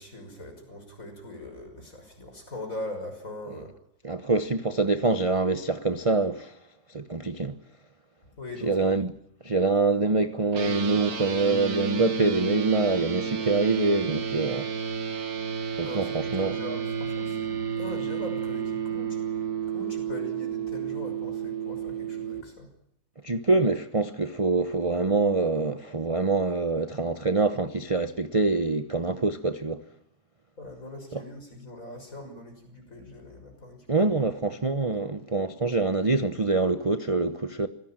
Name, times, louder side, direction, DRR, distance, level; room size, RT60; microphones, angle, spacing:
voice 1, 0.0-3.7 8.4-8.8 15.8-19.2 19.7-22.7 30.6-34.1, left 1 dB, 50° left, 6.7 m, -41 dB
voice 2, 4.0-6.6 6.9-7.5 8.6-9.1 9.4-14.7 15.8-16.5 23.2-29.8 31.1-31.2 33.9-37.7, right 3 dB, 25° right, 0.9 m, -25 dB
sound 1, 10.5-22.4, right 7 dB, 60° right, 2.0 m, -31 dB
26.0 x 17.5 x 9.0 m
omnidirectional pair, 1.9 m